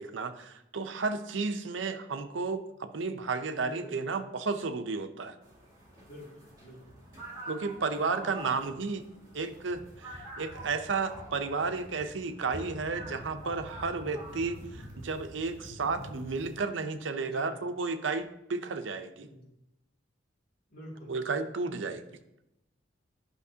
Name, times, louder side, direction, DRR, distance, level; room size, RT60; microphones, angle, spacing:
voice 1, 0.0-5.4 7.5-9.0 9.3-19.3 21.1-22.0, right 4 dB, 75° right, 9 dB, 0.6 m, -33 dB
voice 2, 3.6-3.9 6.1-7.0 8.2-8.5 17.2-17.7 19.2-19.6 20.7-21.1 21.7-22.0, equal, 55° left, -4 dB, 2.4 m, -48 dB
sound 1, 5.4-16.6, right 1 dB, 20° right, 2.7 m, -46 dB
10.5 x 5.8 x 2.8 m, 0.87 s
head